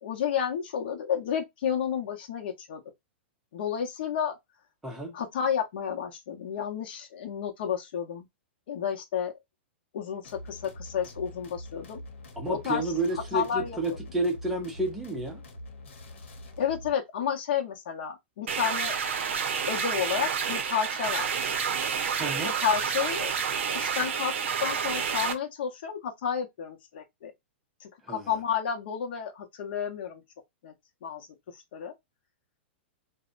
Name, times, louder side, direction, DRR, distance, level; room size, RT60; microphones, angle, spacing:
voice 1, 0.0-2.8 3.5-4.3 5.1-8.3 8.7-9.3 9.9-12.0 12.5-12.8 13.3-13.8 16.6-19.0 19.7-21.6 22.6-23.4 23.7-24.3 24.6-27.3 27.8-30.2 30.6-30.7 31.0-31.3 31.7-31.9, left 8 dB, 55° left, 0.8 m, -31 dB
voice 2, 4.8-5.2 12.4-15.4 22.2-22.5 28.1-28.3, right 2 dB, 5° right, 0.5 m, -30 dB
sound 1, 10.2-16.9, left 1 dB, 85° left, 0.9 m, -44 dB
sound 2, 18.5-25.3, right 7 dB, 90° right, 0.6 m, -29 dB
2.7 x 2.1 x 2.4 m
supercardioid pair, 175°, 6 cm